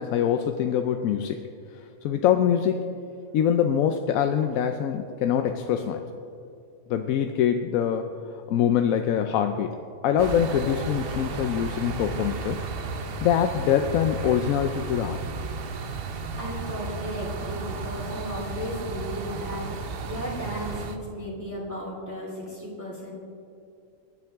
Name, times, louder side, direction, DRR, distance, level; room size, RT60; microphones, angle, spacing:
voice 1, 0.0-1.5 2.0-2.9 3.3-6.1 6.9-8.1 8.5-9.8 10.0-12.7 13.2-15.2, left 9 dB, 90° left, 6 dB, 1.0 m, -24 dB
sound 1, 10.2-21.0, right 4 dB, 50° right, 0.9 m, -34 dB
voice 2, 16.4-19.7 20.0-23.1, equal, 10° right, -5 dB, 2.6 m, -35 dB
21.5 x 9.5 x 3.5 m, 2.5 s
omnidirectional pair, 1.4 m